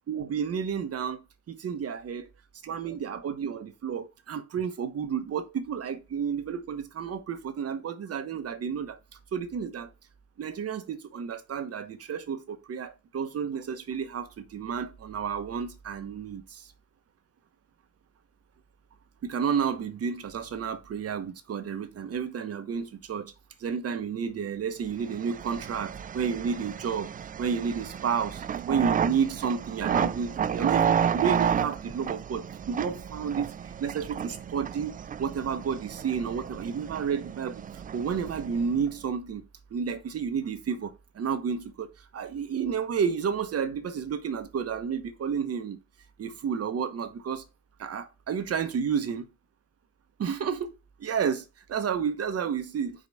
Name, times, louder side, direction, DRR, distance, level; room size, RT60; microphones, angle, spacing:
voice 1, 0.1-2.3 2.6-9.0 9.3-9.9 10.4-16.7 19.2-23.3 23.6-39.4 39.7-45.8 46.2-47.4 47.8-49.3 50.2-50.7 51.0-53.1, right 7 dB, 45° right, 1.1 m, -31 dB
sound 1, 25.0-38.9, right 8 dB, 25° right, 0.4 m, -31 dB
4.9 x 3.9 x 5.4 m
hypercardioid pair, 45°, 34 cm